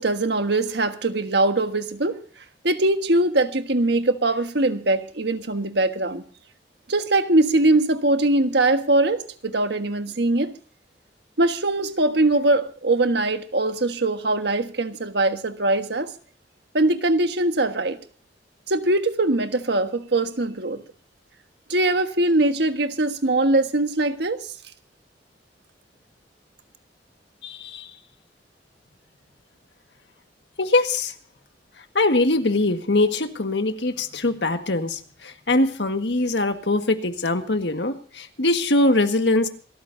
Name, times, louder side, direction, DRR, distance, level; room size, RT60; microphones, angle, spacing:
voice 1, 0.0-2.2 2.6-6.2 6.9-10.5 11.4-16.1 16.7-18.0 18.7-20.8 21.7-24.5, right 2 dB, 70° right, 1.5 m, -22 dB
voice 2, 27.4-27.9 30.6-31.1 31.9-39.5, left 2 dB, 70° left, 1.6 m, -22 dB
27.5 x 13.5 x 2.7 m
head